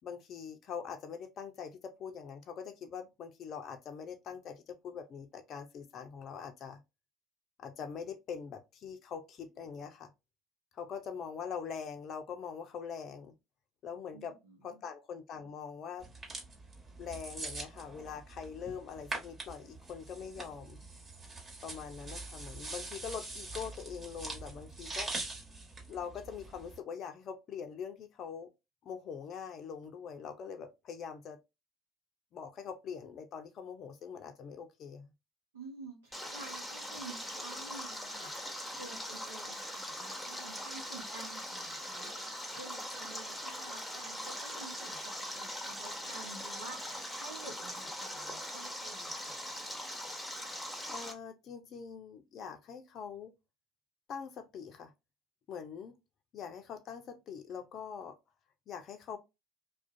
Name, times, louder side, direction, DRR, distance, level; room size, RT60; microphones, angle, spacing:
voice 1, 0.0-6.8 7.6-10.1 10.7-13.3 13.8-14.4 14.6-16.1 17.0-20.8 21.6-25.1 25.9-28.5 28.8-31.4 32.3-35.1 50.9-53.3 54.1-54.9 55.5-56.0 56.3-58.2 58.7-59.2, left 7 dB, 50° left, 0.4 m, -43 dB
voice 2, 14.1-14.8 35.5-49.5, right 3 dB, 85° right, 0.6 m, -50 dB
sound 1, 16.0-26.8, right 2 dB, 35° right, 1.3 m, -44 dB
Stream, 36.1-51.1, equal, 5° left, 0.9 m, -41 dB
2.4 x 2.1 x 2.5 m
hypercardioid pair, 65°, 0 cm